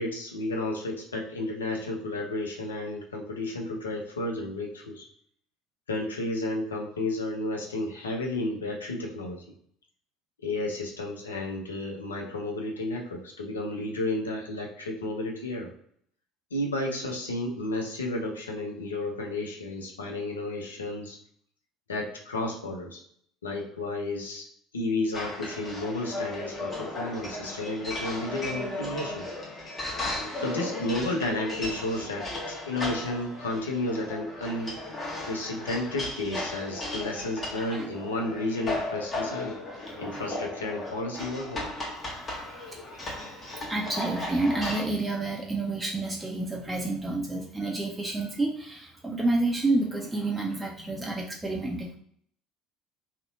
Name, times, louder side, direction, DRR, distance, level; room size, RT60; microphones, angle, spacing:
voice 1, 0.0-5.1 5.9-9.4 10.4-15.7 16.5-21.2 21.9-23.0 23.4-24.5 24.7-29.3 30.4-34.7 35.3-39.6 40.0-41.7, left 2 dB, 80° left, 1 dB, 0.4 m, -32 dB
sound 1, 25.1-44.9, left 2 dB, 30° left, 0.9 m, -36 dB
voice 2, 37.5-37.8 42.4-43.3 43.7-52.0, right 2 dB, 10° right, -1 dB, 0.4 m, -29 dB
2.6 x 2.0 x 2.6 m, 0.65 s
figure-of-eight pair, 60°, 0 cm